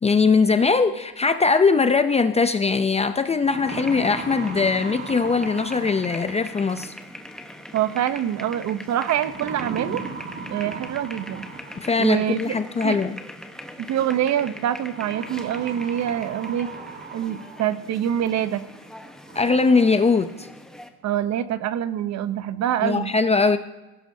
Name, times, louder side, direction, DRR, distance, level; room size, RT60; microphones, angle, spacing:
voice 1, 0.0-6.9 11.8-13.2 19.4-20.5 22.8-23.6, left 4 dB, 15° left, 10 dB, 0.5 m, -20 dB
sound 1, 2.7-2.8 3.2-6.6 8.0-8.4 9.2-12.0 13.3-13.4 14.9-17.8 18.3-18.4 18.9-19.0 19.3-19.8, right 5 dB, 30° right, 1.5 m, -37 dB
sound 2, 3.7-20.9, left 1 dB, ahead, 1.0 m, -41 dB
voice 2, 7.7-10.0 10.5-11.4 12.0-12.5 12.8-13.0 13.8-16.7 17.1-18.6 21.0-23.1, right 10 dB, 45° right, 13 dB, 0.8 m, -25 dB
20.0 x 16.5 x 2.7 m, 1.1 s
cardioid pair, 125°, 38 cm